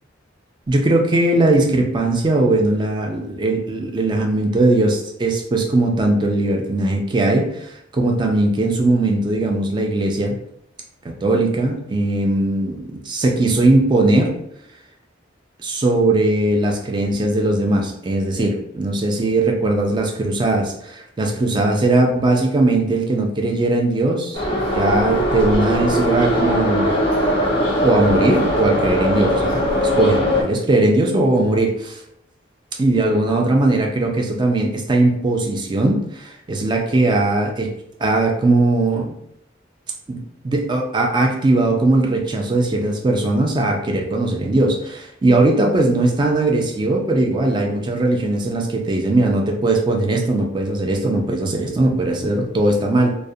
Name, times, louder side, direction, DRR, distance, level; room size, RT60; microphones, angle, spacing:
voice 1, 0.7-10.3 11.0-14.3 15.6-26.9 27.8-32.0 32.8-37.7 38.0-39.1 40.1-40.2 40.4-53.1, right 2 dB, 25° right, 1 dB, 0.3 m, -19 dB
Subway metro underground, 24.3-30.4, equal, 30° left, 0.5 m, -20 dB
2.4 x 2.0 x 2.6 m, 0.78 s
head